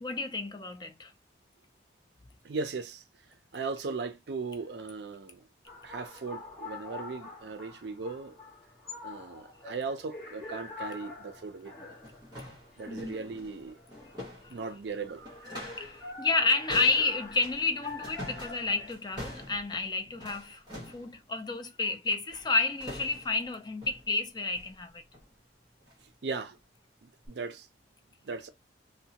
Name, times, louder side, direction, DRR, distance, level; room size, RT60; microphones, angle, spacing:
voice 1, 0.0-1.1 12.9-13.1 14.4-14.5 15.8-25.0, left 3 dB, 25° left, 0.4 m, -30 dB
voice 2, 2.4-3.0 3.5-5.4 5.8-8.4 9.0-11.9 12.8-13.8 14.5-15.5 26.2-26.6 27.0-27.7 28.2-28.5, right 4 dB, 65° right, 0.4 m, -38 dB
sound 1, 5.7-18.9, left 3 dB, ahead, 1.2 m, -46 dB
sound 2, 11.2-11.3 11.8-16.0 16.3-21.1 22.3-22.5 22.8-23.4 23.8-24.1 24.5-24.8 25.1-25.3 25.8-26.0 26.5-26.6 27.3-27.4, left 1 dB, 20° right, 1.2 m, -46 dB
2.7 x 2.1 x 2.8 m
head